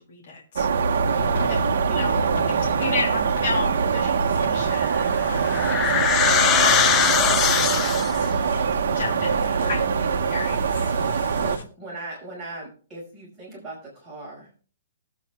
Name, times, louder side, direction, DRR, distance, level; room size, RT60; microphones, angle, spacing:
voice 1, 0.1-1.1 1.5-1.6 1.9-2.2 2.5-8.3 9.0-10.9, left 3 dB, 40° left, -2 dB, 2.9 m, -34 dB
sound 1, 0.6-11.6, right 6 dB, 60° right, 1.1 m, -23 dB
sound 2, 1.1-11.6, left 4 dB, 60° left, 1.2 m, -39 dB
voice 2, 1.1-2.9 9.5-9.7 11.4-14.5, right 2 dB, 5° right, -8 dB, 5.4 m, -39 dB
sound 3, 4.9-8.3, left 8 dB, 15° left, 0.4 m, -21 dB
20.0 x 8.2 x 2.3 m, 0.40 s
hypercardioid pair, 180°, 0 cm